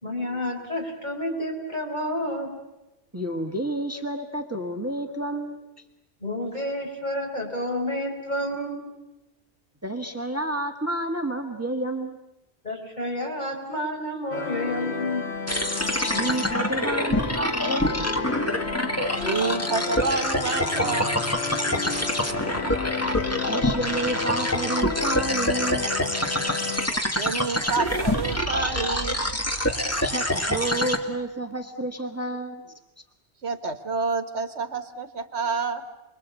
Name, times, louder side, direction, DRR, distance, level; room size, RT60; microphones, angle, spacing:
voice 1, 0.0-2.5 6.2-8.8 12.6-15.3, left 1 dB, 40° left, 1 dB, 5.3 m, -30 dB
voice 2, 3.1-5.6 9.8-12.2 16.0-17.9 22.8-22.9 23.5-25.9 29.5-29.6 30.0-32.6, right 1 dB, 15° right, 4 dB, 1.8 m, -30 dB
sound 1, 14.3-26.9, left 5 dB, 75° left, 1.7 m, -32 dB
sound 2, 15.5-31.0, left 1 dB, 15° left, 1.9 m, -26 dB
voice 3, 19.2-21.2 26.9-29.2 33.4-35.8, right 4 dB, 90° right, 9 dB, 1.9 m, -28 dB
sound 3, 26.8-31.0, right 3 dB, 55° right, 1.4 m, -39 dB
29.5 x 22.0 x 8.3 m, 0.96 s
omnidirectional pair, 1.1 m